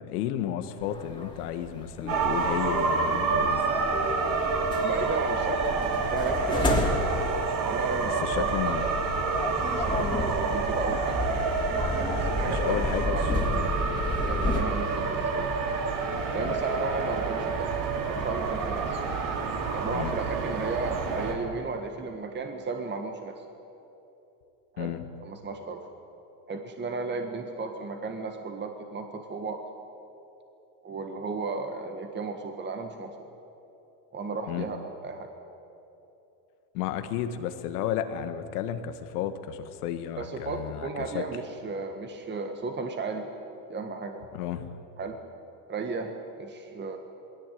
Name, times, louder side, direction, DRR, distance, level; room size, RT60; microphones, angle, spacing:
voice 1, 0.0-3.7 6.6-6.9 8.2-8.8 12.5-13.8 16.4-16.6 19.9-20.1 24.8-25.0 34.5-34.7 36.7-41.2 44.3-44.7, left 10 dB, 85° left, 9 dB, 1.8 m, -33 dB
sound 1, 0.8-14.6, left 2 dB, 10° left, 3.2 m, -32 dB
sound 2, 2.1-21.3, right 4 dB, 45° right, 3.4 m, -28 dB
voice 2, 4.8-5.6 6.1-7.1 7.6-8.9 9.7-11.2 11.9-13.2 14.2-15.5 16.3-17.7 18.1-19.0 19.7-23.4 24.7-24.9 25.2-25.8 26.5-29.6 30.8-33.1 34.1-35.3 40.2-43.3 43.7-44.3 45.0-45.1 45.7-46.1 46.4-47.0, right 4 dB, 25° right, 5 dB, 1.7 m, -34 dB
20.5 x 17.5 x 9.4 m, 3.0 s
supercardioid pair, 115°, 44 cm